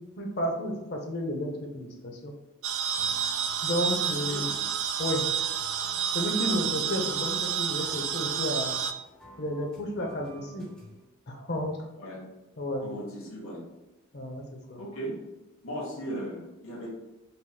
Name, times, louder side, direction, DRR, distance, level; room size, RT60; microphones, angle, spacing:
voice 1, 0.0-2.3 3.6-4.5 5.0-5.2 6.1-8.7 9.4-10.6 11.3-11.8 12.6-12.9 14.1-14.8, left 1 dB, 50° left, 1 dB, 0.7 m, -32 dB
sound 1, 2.6-8.9, right 8 dB, 80° right, 0.3 m, -29 dB
sound 2, 2.9-11.0, equal, 5° left, 1.0 m, -52 dB
voice 2, 12.8-13.6 14.8-15.1 15.6-16.9, right 1 dB, 85° left, -4 dB, 1.5 m, -37 dB
4.9 x 2.9 x 2.2 m, 1.0 s
head